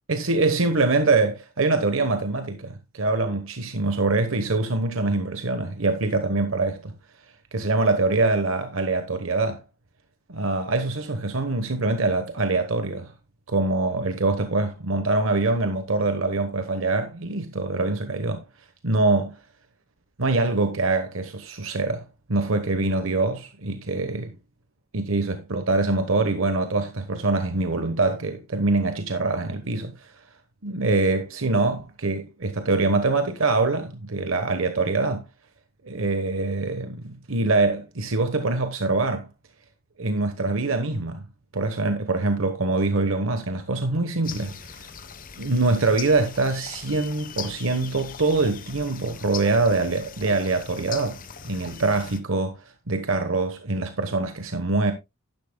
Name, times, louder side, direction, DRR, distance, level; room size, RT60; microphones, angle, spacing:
voice 1, 0.1-6.9 7.5-9.6 10.3-13.1 13.5-18.4 18.8-19.4 20.2-22.0 22.3-24.4 24.9-30.1 30.6-35.3 35.8-39.3 40.0-41.3 41.5-44.8 45.4-51.2 51.4-54.9, right 3 dB, 70° right, 1.1 m, -24 dB
sound 1, 44.2-52.2, left 7 dB, 40° left, 0.9 m, -40 dB
11.5 x 10.5 x 2.2 m
head